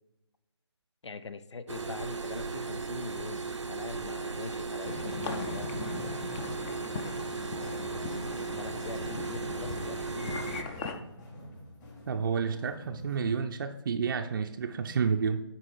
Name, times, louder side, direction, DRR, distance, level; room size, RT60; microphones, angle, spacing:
voice 1, 1.0-5.8 7.6-8.1 8.5-10.5, left 4 dB, 75° left, 13 dB, 0.6 m, -43 dB
sound 1, 1.7-10.6, right 4 dB, 90° right, 0.6 m, -36 dB
sound 2, 4.8-10.9, left 4 dB, 15° left, 0.5 m, -39 dB
sound 3, 7.6-13.2, left 1 dB, 40° left, 2.7 m, -48 dB
voice 2, 12.1-15.4, right 6 dB, 50° right, 4 dB, 0.5 m, -30 dB
9.4 x 4.1 x 4.8 m, 0.96 s
figure-of-eight pair, 145°, 15 cm